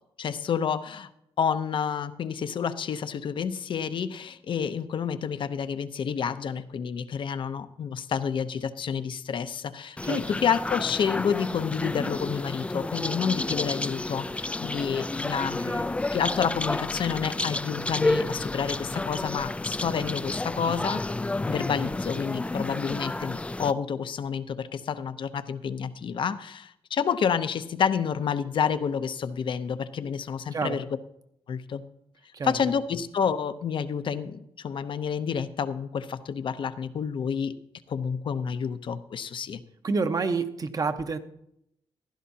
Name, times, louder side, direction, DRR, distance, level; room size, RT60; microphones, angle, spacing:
voice 1, 0.2-1.1 1.4-15.8 16.1-21.0 21.5-30.9 31.5-31.8 32.4-37.5 37.9-39.6, left 7 dB, 60° left, 11 dB, 0.7 m, -29 dB
sound 1, 10.0-23.7, left 2 dB, 10° left, 0.4 m, -31 dB
voice 2, 39.8-41.2, right 4 dB, 40° right, 9 dB, 1.0 m, -28 dB
15.5 x 12.0 x 2.8 m, 0.76 s
cardioid pair, 90°, 10 cm